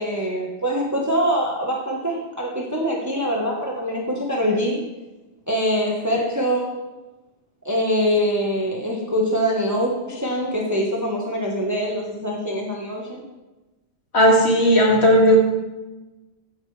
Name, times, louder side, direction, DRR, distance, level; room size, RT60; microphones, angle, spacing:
voice 1, 0.0-4.8 5.5-6.8 7.6-13.2, equal, 15° right, -1 dB, 1.3 m, -24 dB
voice 2, 14.1-15.4, equal, 50° left, -2 dB, 2.9 m, -15 dB
15.0 x 9.1 x 3.4 m, 1.1 s
omnidirectional pair, 1.4 m